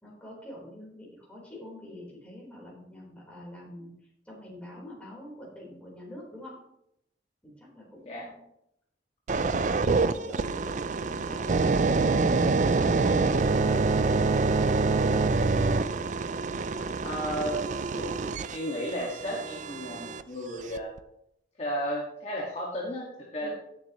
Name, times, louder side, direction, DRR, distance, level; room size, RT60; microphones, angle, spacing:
voice 1, 0.0-3.9 4.3-6.6 7.4-8.4 9.5-11.6 12.2-13.8 16.7-16.9 18.1-18.3 23.4-23.5, left 1 dB, 5° left, -4 dB, 3.9 m, -45 dB
sound 1, 9.3-20.2 20.8-21.0, right 3 dB, 45° right, 0.4 m, -26 dB
voice 2, 17.0-17.6 17.9-18.1 18.5-20.9 21.6-23.5, equal, 35° left, -4 dB, 1.7 m, -33 dB
16.5 x 7.1 x 3.0 m, 0.80 s
head